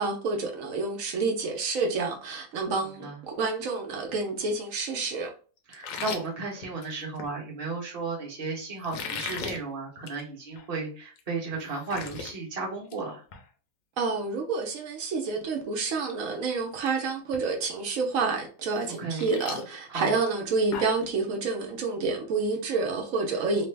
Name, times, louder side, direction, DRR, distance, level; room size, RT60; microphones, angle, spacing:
voice 1, 0.0-5.3 14.0-23.7, right 4 dB, 80° right, 1.1 m, -29 dB
sound 1, 5.7-7.3 8.8-9.6 10.0-10.2 10.6-10.7 11.2-11.3 11.5-12.3 12.7-13.0 13.3-13.4 15.3-15.4 15.8-16.1 16.4-16.9 17.3-17.4 18.8-21.1, left 5 dB, 85° left, 1.0 m, -38 dB
voice 2, 5.7-13.2 19.0-19.3 19.9-20.1 23.3-23.5, right 3 dB, 30° right, 0.9 m, -34 dB
3.2 x 2.0 x 3.2 m
omnidirectional pair, 1.4 m